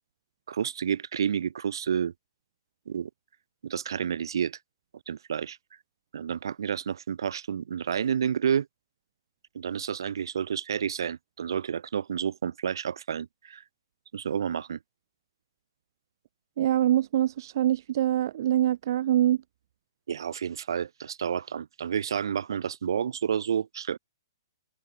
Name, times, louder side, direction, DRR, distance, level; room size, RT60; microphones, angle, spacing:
voice 1, 0.5-2.1 2.9-3.1 3.6-4.6 5.1-5.6 6.1-8.7 9.5-13.6 14.1-14.8 20.1-24.0, right 8 dB, 70° right, 1.6 m, -30 dB
voice 2, 16.6-19.4, right 12 dB, 55° right, 0.4 m, -24 dB
hypercardioid pair, 140°, 2 cm